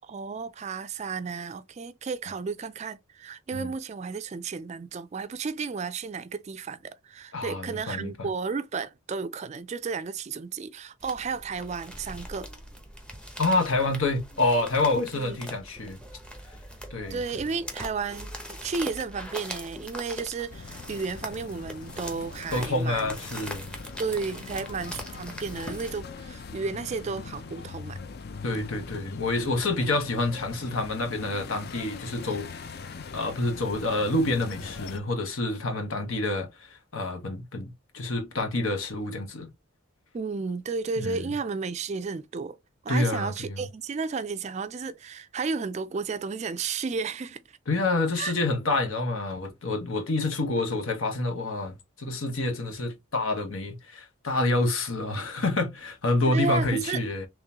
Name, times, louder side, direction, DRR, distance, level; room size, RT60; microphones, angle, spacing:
voice 1, 0.0-12.5 15.1-15.4 17.1-23.1 24.0-28.0 40.1-42.6 42.8-47.4 48.2-48.3 56.3-57.0, right 4 dB, 35° right, 0.3 m, -33 dB
voice 2, 7.3-8.3 13.4-16.0 16.9-17.2 22.5-23.7 28.4-32.5 33.0-39.5 41.0-41.3 42.9-43.6 47.7-57.3, left 2 dB, 80° left, 1.2 m, -28 dB
sound 1, 11.0-26.0, equal, 5° left, 0.7 m, -42 dB
sound 2, 20.5-35.0, left 4 dB, 50° left, 0.4 m, -42 dB
3.7 x 3.1 x 2.9 m
head